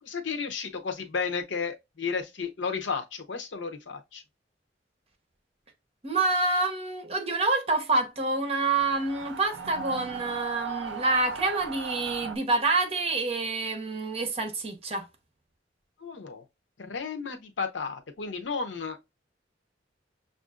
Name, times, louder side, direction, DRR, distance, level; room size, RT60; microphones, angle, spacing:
voice 1, 0.0-4.2 16.0-16.4 16.8-19.1, left 5 dB, 90° left, 0.7 m, -33 dB
voice 2, 6.0-15.1, right 3 dB, 35° right, 1.0 m, -27 dB
sound 1, 8.8-12.4, right 6 dB, 75° right, 0.5 m, -37 dB
6.2 x 2.5 x 2.4 m
head